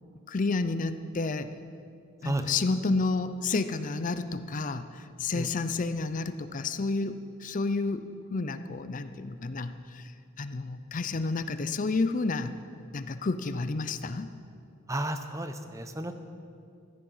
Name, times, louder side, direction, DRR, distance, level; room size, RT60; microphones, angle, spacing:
voice 1, 0.3-1.5 2.2-10.1 10.4-12.5 12.9-14.3, left 3 dB, 40° left, 11 dB, 0.5 m, -30 dB
voice 2, 14.9-16.1, right 1 dB, 15° right, 8 dB, 0.8 m, -32 dB
15.0 x 13.0 x 5.5 m, 2.4 s
head